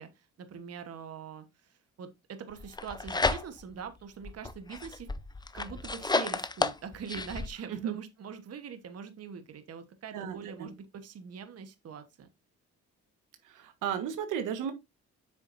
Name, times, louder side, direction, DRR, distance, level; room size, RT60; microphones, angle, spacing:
voice 1, 0.0-5.1 5.5-12.3, right 7 dB, 55° right, 1.3 m, -43 dB
sound 1, 2.6-3.8 4.2-7.5, left 3 dB, 15° left, 0.7 m, -32 dB
voice 2, 10.1-10.7 13.4-14.7, right 8 dB, 90° right, 1.4 m, -34 dB
8.2 x 6.3 x 2.6 m
cardioid pair, 90°, 30 cm